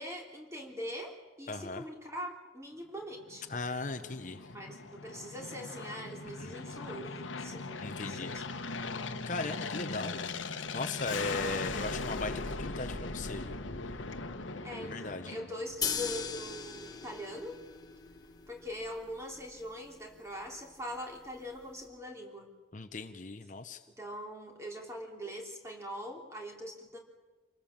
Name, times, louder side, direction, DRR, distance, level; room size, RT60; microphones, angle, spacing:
voice 1, 0.0-3.5 4.5-8.6 14.6-17.6 18.5-22.5 23.9-27.0, equal, 15° right, 1 dB, 3.2 m, -42 dB
voice 2, 1.5-1.8 3.5-4.5 6.4-6.5 7.8-8.3 9.3-13.6 14.8-15.3 22.7-23.8, left 3 dB, 40° left, 8 dB, 0.8 m, -38 dB
Aircraft, 3.3-16.0, left 3 dB, 90° left, 1.2 m, -39 dB
sound 1, 15.8-21.8, left 6 dB, 20° left, 1.4 m, -41 dB
27.5 x 19.0 x 7.3 m, 1.3 s
head